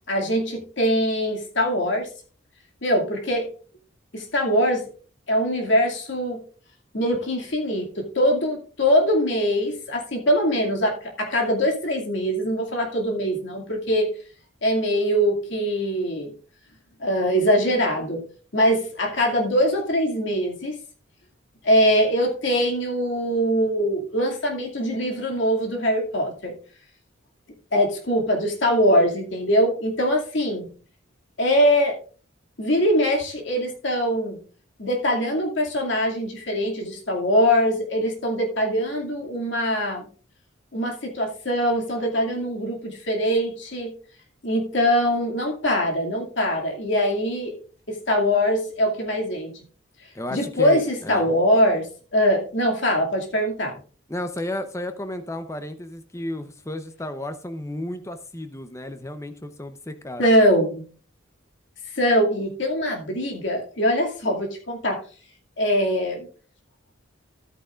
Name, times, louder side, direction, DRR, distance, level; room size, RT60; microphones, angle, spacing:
voice 1, 0.1-2.1 2.8-3.5 4.1-4.8 5.3-6.4 6.9-14.1 14.6-16.3 17.0-18.2 18.5-20.8 21.6-26.5 27.7-30.7 31.4-32.0 32.6-34.4 34.8-40.1 40.7-43.9 44.4-47.5 47.9-49.7 50.3-51.9 52.1-53.8 60.2-60.8 61.9-65.0 65.6-66.3, equal, 60° left, 2.3 m, -22 dB
voice 2, 50.1-51.3 54.1-60.2, left 1 dB, 15° left, 0.7 m, -33 dB
13.0 x 8.9 x 2.4 m
head